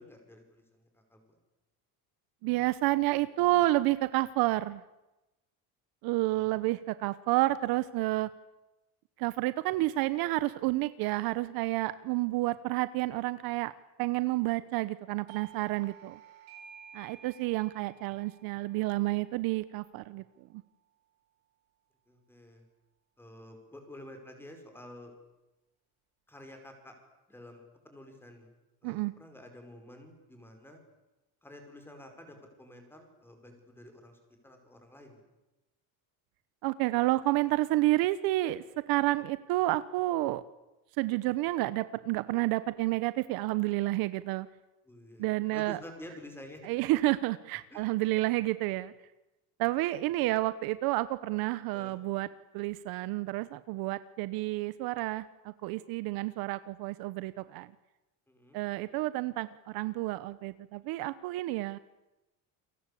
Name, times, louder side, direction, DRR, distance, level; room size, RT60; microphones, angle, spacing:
voice 1, 0.0-1.4 6.3-6.5 22.1-22.6 23.2-25.1 26.3-26.9 27.3-28.5 28.8-30.8 31.4-35.2 44.9-46.6 47.7-47.9 48.2-48.3 51.7-52.0 58.3-58.6, left 1 dB, 5° left, 4 dB, 5.3 m, -50 dB
voice 2, 2.4-4.8 6.0-8.3 9.2-13.7 14.0-16.2 16.9-20.2 28.8-29.1 36.6-40.4 41.0-44.5 45.2-45.8 46.6-48.9 49.6-52.3 52.5-57.7 58.5-61.8, right 18 dB, 60° right, 15 dB, 1.1 m, -30 dB
Doorbell, 15.3-20.6, right 8 dB, 90° right, 5.0 m, -54 dB
29.0 x 23.0 x 8.5 m, 1.0 s
cardioid pair, 170°, 41 cm